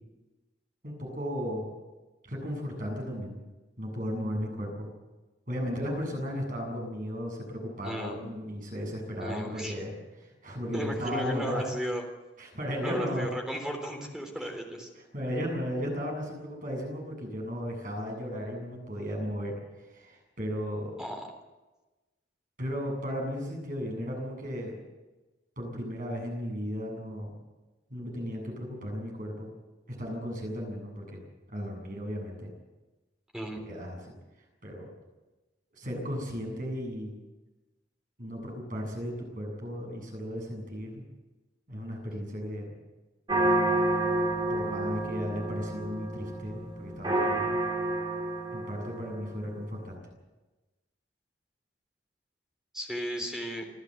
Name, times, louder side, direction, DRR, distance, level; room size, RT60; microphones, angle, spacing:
voice 1, 0.8-1.7 2.2-3.4 3.8-4.9 5.5-10.0 10.4-11.6 12.4-13.3 14.4-14.5 15.1-19.5 19.9-20.9 22.6-24.8 25.6-27.3 27.9-29.5 29.9-31.2 31.5-32.5 33.7-34.0 34.6-34.9 35.8-37.1 38.2-41.0 41.7-42.7 44.5-47.6 48.5-50.0, equal, 45° right, 0 dB, 7.7 m, -35 dB
voice 2, 7.8-8.2 9.2-9.8 10.7-12.0 12.8-14.9 21.0-21.3 33.3-33.6 52.7-53.7, equal, 5° right, 2 dB, 3.6 m, -35 dB
sound 1, 43.3-49.4, right 2 dB, 25° right, 2.5 m, -29 dB
26.5 x 13.5 x 7.9 m, 1.1 s
head